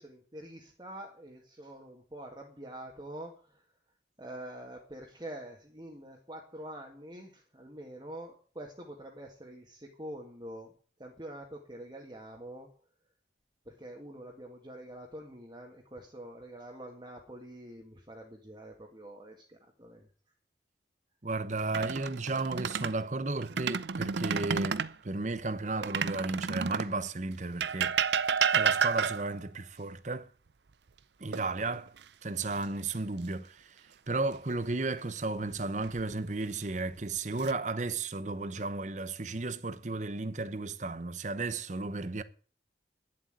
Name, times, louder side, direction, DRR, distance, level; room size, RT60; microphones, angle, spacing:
voice 1, 0.0-3.6 4.2-10.7 11.0-12.7 13.7-20.1, right 1 dB, 25° right, 1.9 m, -46 dB
voice 2, 21.2-28.0 28.5-30.3 31.2-31.9 32.2-33.8 34.1-42.2, right 3 dB, 40° right, 0.8 m, -34 dB
sound 1, 21.6-23.0 23.4-24.9 25.8-27.0 27.6-29.4 31.3-32.0 32.4-32.6 35.5-36.1 36.9-37.5, right 6 dB, 70° right, 0.6 m, -30 dB
11.0 x 7.6 x 9.4 m
head